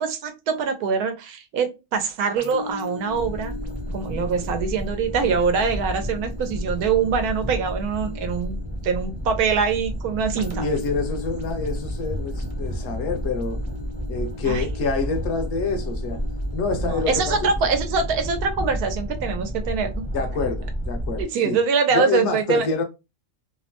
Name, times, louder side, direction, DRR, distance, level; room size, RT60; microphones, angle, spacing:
voice 1, 0.0-3.6 3.9-8.6 8.8-10.7 14.5-14.6 16.8-20.0 21.2-22.7, right 5 dB, 90° right, 1.2 m, -24 dB
sound 1, 2.4-19.9 20.4-20.6, left 3 dB, 40° right, 0.5 m, -41 dB
sound 2, 3.1-21.2, equal, 10° left, 0.5 m, -31 dB
voice 2, 10.6-13.6 14.1-16.2 16.5-17.5 20.1-21.6 21.9-22.8, left 4 dB, 60° left, 0.9 m, -27 dB
2.9 x 2.0 x 2.8 m
omnidirectional pair, 1.6 m